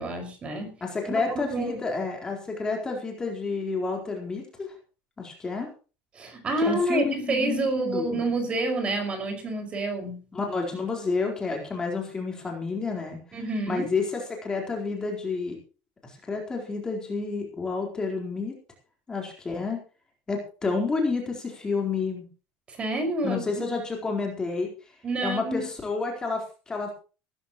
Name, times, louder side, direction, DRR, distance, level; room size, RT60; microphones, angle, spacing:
voice 1, 0.0-0.8 1.0-1.8 6.1-10.3 13.3-13.9 22.7-23.6 25.0-25.7, right 2 dB, 25° right, 5 dB, 5.6 m, -28 dB
voice 2, 0.8-4.7 5.2-5.7 6.7-8.2 10.3-13.4 13.7-15.6 16.0-18.5 19.1-19.8 20.3-22.3 23.2-24.7 25.2-26.9, left 4 dB, 15° left, 0 dB, 4.1 m, -30 dB
18.0 x 14.5 x 3.1 m, 0.35 s
cardioid pair, 150°, 5 cm